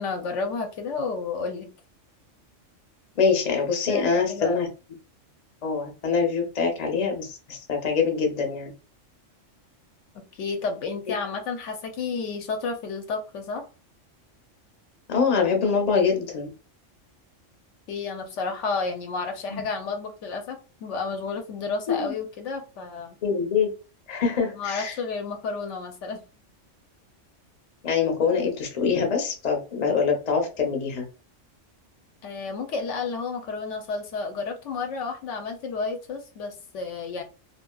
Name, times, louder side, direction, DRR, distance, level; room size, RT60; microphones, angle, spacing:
voice 1, 0.0-1.7 3.9-4.7 10.1-13.7 17.9-23.2 24.5-26.2 32.2-37.2, left 4 dB, 75° left, 5 dB, 0.9 m, -31 dB
voice 2, 3.2-4.7 5.6-8.7 15.1-16.5 19.5-19.6 21.9-22.1 23.2-23.7 24.1-25.0 27.8-31.0, left 5 dB, 40° left, 2 dB, 0.7 m, -24 dB
2.8 x 2.5 x 2.2 m, 0.33 s
omnidirectional pair, 1.3 m